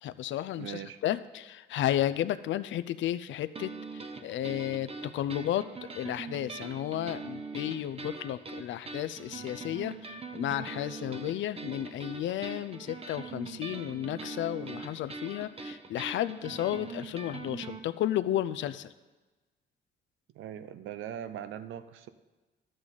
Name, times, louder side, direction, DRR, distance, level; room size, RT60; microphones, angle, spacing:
voice 1, 0.0-5.6 5.9-18.9, left 12 dB, 70° left, 14 dB, 0.5 m, -33 dB
voice 2, 0.6-1.0 20.3-22.1, right 10 dB, 80° right, 12 dB, 0.6 m, -40 dB
sound 1, 3.6-17.8, right 4 dB, 30° right, 0.8 m, -42 dB
11.5 x 7.7 x 4.0 m, 1.2 s
cardioid pair, 90°, 20 cm